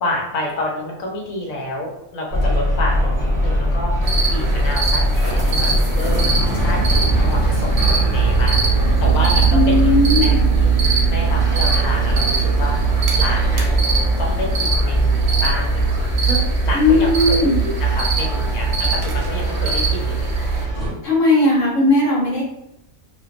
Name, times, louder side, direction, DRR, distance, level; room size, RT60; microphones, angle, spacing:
voice 1, 0.0-6.3 6.5-10.7 11.1-12.8 13.1-13.7 14.2-16.0 16.2-20.3, left 1 dB, 85° left, -2 dB, 1.1 m, -28 dB
sound 1, 2.3-20.9, right 3 dB, 50° left, 0.8 m, -20 dB
sound 2, 2.9-7.9, right 1 dB, 30° right, 0.3 m, -31 dB
sound 3, 4.0-20.6, right 2 dB, 75° right, 0.9 m, -24 dB
voice 2, 9.5-10.4 16.7-17.6 21.0-22.4, left 2 dB, 65° left, -6 dB, 1.3 m, -17 dB
2.8 x 2.0 x 2.4 m, 0.80 s
omnidirectional pair, 1.4 m